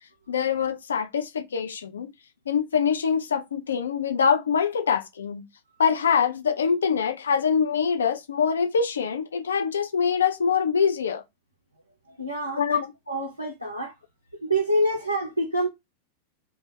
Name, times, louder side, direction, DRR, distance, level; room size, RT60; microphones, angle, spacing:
voice 1, 0.3-2.1 2.5-5.4 5.8-11.2 12.6-12.9, left 6 dB, 70° left, 0.4 m, -24 dB
voice 2, 12.1-12.8 13.1-13.9 14.4-15.7, right 1 dB, 90° right, 0.6 m, -26 dB
2.2 x 2.1 x 3.2 m
figure-of-eight pair, 90°, 0 cm